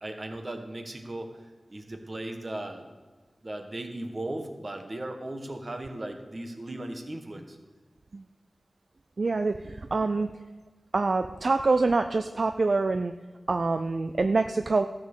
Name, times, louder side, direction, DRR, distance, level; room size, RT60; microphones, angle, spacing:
voice 1, 0.0-1.4 1.7-2.9 3.4-7.6, right 1 dB, 45° right, 5 dB, 1.6 m, -37 dB
voice 2, 9.2-10.3 10.9-13.1 13.5-14.8, right 3 dB, 65° right, 9 dB, 0.4 m, -25 dB
13.0 x 7.5 x 6.3 m, 1.3 s
wide cardioid pair, 55°, 0 cm